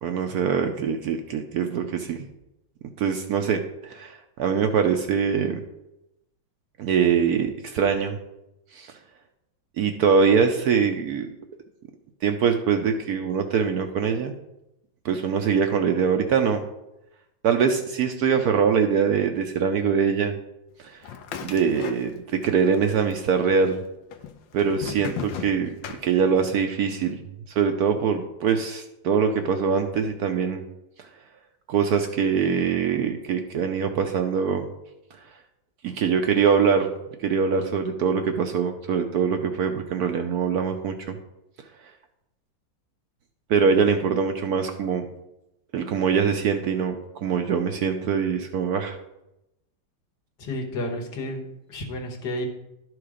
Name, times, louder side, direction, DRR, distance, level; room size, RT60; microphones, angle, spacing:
voice 1, 0.0-2.3 3.0-5.6 6.8-8.2 8.7-9.0 9.8-11.3 12.2-14.3 15.0-16.6 17.4-20.3 20.8-21.1 21.4-23.8 24.5-25.7 26.0-27.2 27.5-30.6 31.0-31.1 31.7-34.7 35.1-35.4 35.8-36.9 37.2-41.2 41.8-41.9 43.5-45.1 45.7-49.0, right 6 dB, 70° right, 6 dB, 1.0 m, -23 dB
sound 1, 21.0-22.5 22.7-23.5 24.1-26.6, left 8 dB, 90° left, 1.4 m, -36 dB
voice 2, 50.4-52.5, left 1 dB, 65° left, 2 dB, 1.8 m, -31 dB
11.5 x 4.7 x 4.9 m, 0.90 s
omnidirectional pair, 2.0 m